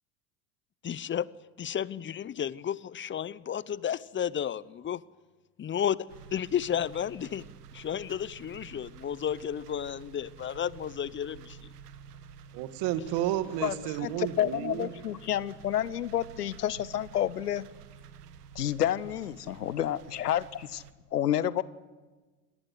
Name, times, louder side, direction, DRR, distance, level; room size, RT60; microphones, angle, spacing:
voice 1, 0.8-1.3 1.6-5.0 5.6-6.0 6.3-7.5 7.7-11.7, left 9 dB, 25° left, 20 dB, 0.8 m, -32 dB
sound 1, 6.1-20.9, right 7 dB, 80° right, 1.6 m, -50 dB
voice 2, 12.5-15.0, right 12 dB, 60° right, 10 dB, 2.1 m, -31 dB
voice 3, 14.0-17.7 18.5-20.8 21.1-21.6, left 11 dB, 90° left, 19 dB, 0.9 m, -29 dB
26.5 x 18.5 x 8.0 m, 1.3 s
hypercardioid pair, 75°, 46 cm